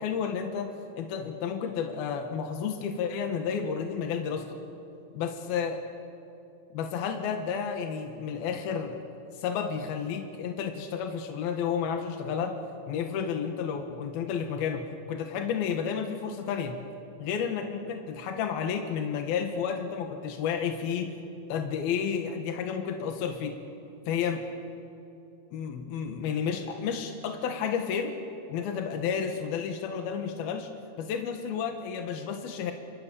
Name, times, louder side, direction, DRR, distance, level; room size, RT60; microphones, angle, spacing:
voice 1, 0.0-4.6 5.1-5.8 6.7-9.0 9.3-12.6 12.9-16.7 17.2-21.1 21.5-23.6 24.1-24.4 25.5-28.2 28.5-30.7 31.0-32.7, left 7 dB, 80° left, 4 dB, 3.3 m, -31 dB
30.0 x 27.0 x 6.9 m, 2.7 s
omnidirectional pair, 4.3 m